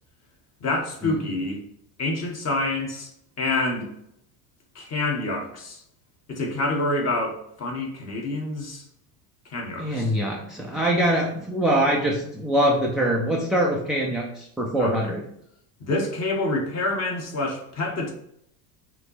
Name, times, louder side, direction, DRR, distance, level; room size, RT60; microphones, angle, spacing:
voice 1, 0.6-1.6 2.0-3.1 3.4-3.9 4.7-5.8 6.3-8.8 9.5-10.1 14.8-15.2 15.8-18.1, left 2 dB, 30° left, 1 dB, 1.5 m, -27 dB
voice 2, 9.8-15.2, right 1 dB, ahead, -2 dB, 0.3 m, -23 dB
5.6 x 3.1 x 5.5 m, 0.72 s
cardioid pair, 145°, 48 cm